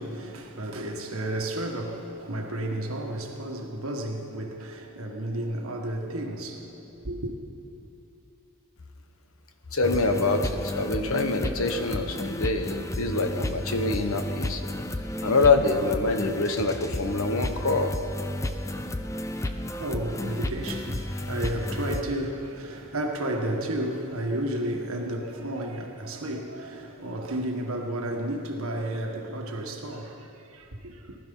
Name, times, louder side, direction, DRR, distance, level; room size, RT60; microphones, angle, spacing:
voice 1, 0.0-7.3 19.3-31.2, right 1 dB, 70° right, 1.7 m, -32 dB
voice 2, 9.7-14.6 15.2-17.9, left 3 dB, 65° left, 1.1 m, -25 dB
sound 1, 9.8-22.0, left 1 dB, 15° left, 0.4 m, -32 dB
19.0 x 12.5 x 5.5 m
head